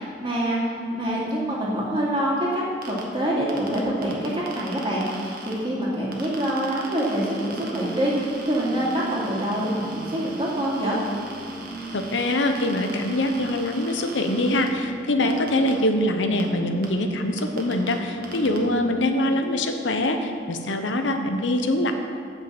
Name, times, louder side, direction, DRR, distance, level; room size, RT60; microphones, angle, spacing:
voice 1, 0.0-11.0, right 1 dB, 30° right, -7 dB, 2.5 m, -26 dB
sound 1, 2.8-3.0 3.5-5.5 6.1-14.7 15.3-15.7 16.4-16.5 16.8-16.9 17.4-17.9 18.2-18.6, right 3 dB, 55° right, 1.4 m, -41 dB
sound 2, 6.9-19.4, right 2 dB, 5° right, 1.1 m, -38 dB
voice 2, 11.9-21.9, left 1 dB, 90° left, 6 dB, 0.9 m, -24 dB
8.3 x 6.3 x 7.3 m, 2.2 s
head